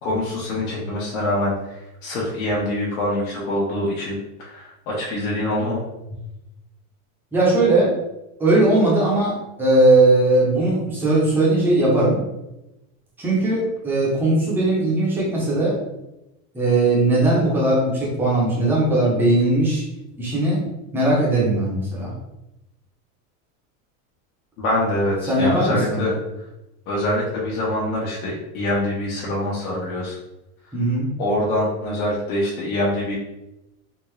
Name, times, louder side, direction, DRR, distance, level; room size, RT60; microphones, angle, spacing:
voice 1, 0.0-5.8 24.6-26.1 26.9-30.2 31.2-33.2, left 1 dB, 85° left, -6 dB, 1.1 m, -24 dB
voice 2, 7.3-7.9 8.4-12.2 13.2-15.8 16.5-19.8 20.2-20.6 20.9-22.1 25.3-26.1 30.7-31.1, right 2 dB, 5° right, -6 dB, 0.5 m, -19 dB
3.6 x 2.5 x 3.1 m, 0.94 s
supercardioid pair, 170°, 42 cm